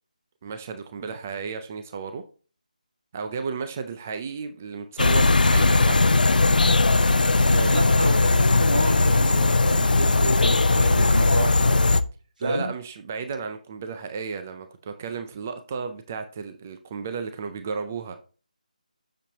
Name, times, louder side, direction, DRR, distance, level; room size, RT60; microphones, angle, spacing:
voice 1, 0.4-2.2 3.1-6.1 12.4-18.2, right 5 dB, 15° right, 8 dB, 0.3 m, -33 dB
sound 1, 5.0-12.0, left 3 dB, 90° left, 0.6 m, -19 dB
voice 2, 7.4-11.9 12.4-12.7, right 1 dB, 85° right, 1 dB, 3.3 m, -30 dB
7.4 x 6.9 x 2.8 m, 0.36 s
figure-of-eight pair, 175°, 4 cm